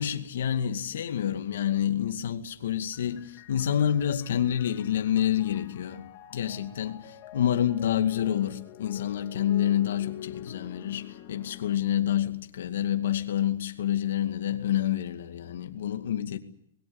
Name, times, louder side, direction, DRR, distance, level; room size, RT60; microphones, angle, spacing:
voice 1, 0.0-16.4, left 10 dB, 70° left, 2.2 m, -28 dB
sound 1, 2.9-11.8, left 11 dB, 35° left, 2.1 m, -47 dB
27.0 x 21.5 x 7.2 m
hypercardioid pair, 170°, 0 cm